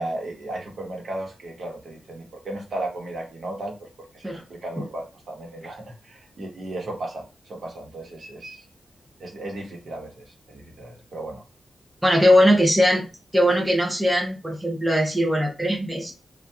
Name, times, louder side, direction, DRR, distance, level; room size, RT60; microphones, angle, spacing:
voice 1, 0.0-8.6 9.2-11.4 12.3-12.6, right 1 dB, 55° right, 0 dB, 1.2 m, -35 dB
voice 2, 12.0-13.0 13.3-16.1, equal, 5° right, -2 dB, 0.8 m, -20 dB
2.8 x 2.4 x 3.4 m, 0.29 s
wide cardioid pair, 150°, 0 cm